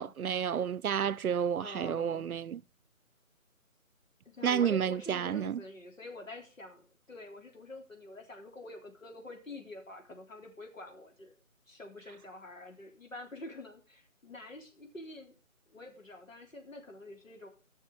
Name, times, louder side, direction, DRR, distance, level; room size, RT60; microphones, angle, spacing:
voice 1, 0.0-2.6 4.4-5.6, right 8 dB, 90° right, 0.6 m, -30 dB
voice 2, 1.6-2.3 4.3-11.3 11.7-15.4 15.7-17.5, left 2 dB, 65° left, 3.6 m, -47 dB
15.0 x 6.4 x 4.8 m
figure-of-eight pair, 175°, 42 cm